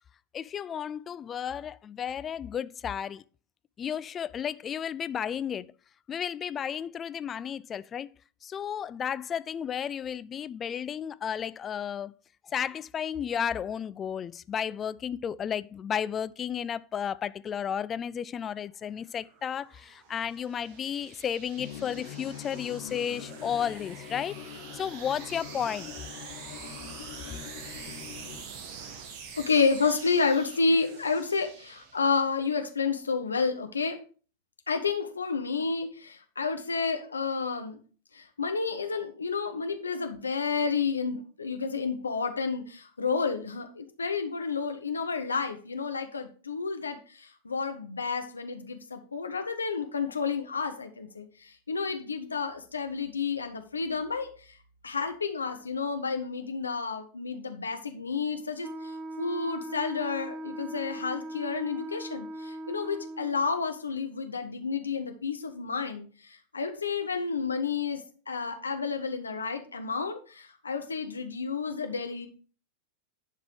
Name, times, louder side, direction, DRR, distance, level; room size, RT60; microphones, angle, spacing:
voice 1, 0.3-3.2 3.8-5.7 6.1-8.1 8.4-12.1 12.4-25.9, left 8 dB, 25° left, 0.3 m, -33 dB
sound 1, 18.9-32.4, right 6 dB, 40° right, 1.4 m, -46 dB
sound 2, 21.6-28.4, left 9 dB, 55° left, 2.1 m, -44 dB
voice 2, 29.4-34.0 34.7-37.8 38.1-54.5 54.8-58.9 59.2-72.3, left 5 dB, 75° left, 1.3 m, -30 dB
Wind instrument woodwind instrument, 58.6-63.5, right 1 dB, 25° right, 0.7 m, -39 dB
11.0 x 4.7 x 4.7 m
figure-of-eight pair, 90°, 0 cm